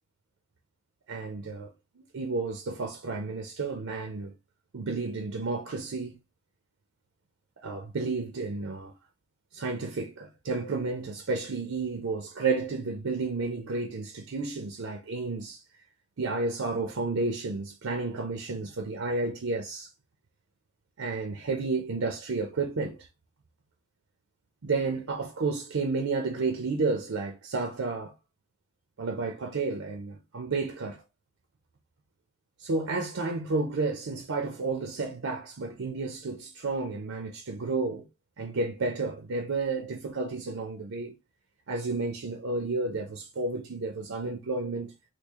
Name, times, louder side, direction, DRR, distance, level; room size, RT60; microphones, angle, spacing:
voice 1, 1.1-4.3 4.7-6.2 7.6-8.9 9.5-15.6 16.2-19.9 21.0-23.1 24.6-28.1 29.0-31.0 32.6-38.0 38.4-41.1 41.7-44.9, right 3 dB, 90° right, 0.6 m, -31 dB
3.2 x 2.4 x 3.5 m
head